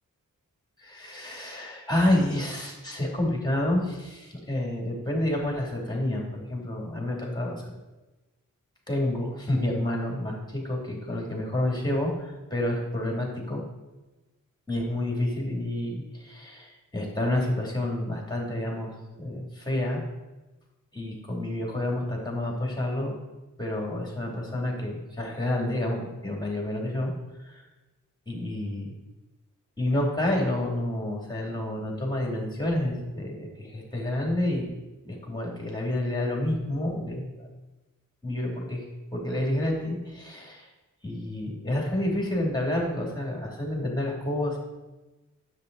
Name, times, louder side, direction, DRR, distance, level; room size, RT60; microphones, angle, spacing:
voice 1, 0.8-7.6 8.9-13.6 14.7-18.9 19.2-20.0 20.9-23.2 23.6-27.1 27.5-27.6 28.3-28.9 29.8-34.7 35.0-37.5 38.2-38.8 39.1-40.7 41.0-44.6, left 1 dB, 15° left, -1 dB, 2.7 m, -29 dB
9.9 x 7.8 x 4.0 m, 1.1 s
wide cardioid pair, 90°, 33 cm